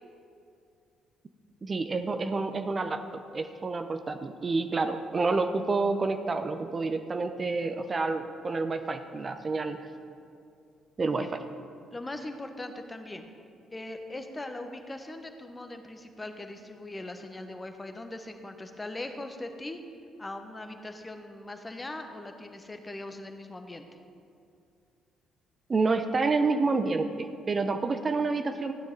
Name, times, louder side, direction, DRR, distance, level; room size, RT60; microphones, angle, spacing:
voice 1, 1.6-3.0 3.3-9.8 11.0-11.3 25.7-28.7, right 3 dB, 35° right, 7 dB, 0.7 m, -28 dB
voice 2, 11.9-13.2 13.7-19.8 20.2-23.8, left 2 dB, 20° left, 6 dB, 1.2 m, -40 dB
14.5 x 9.6 x 3.9 m, 2.5 s
figure-of-eight pair, 45°, 0 cm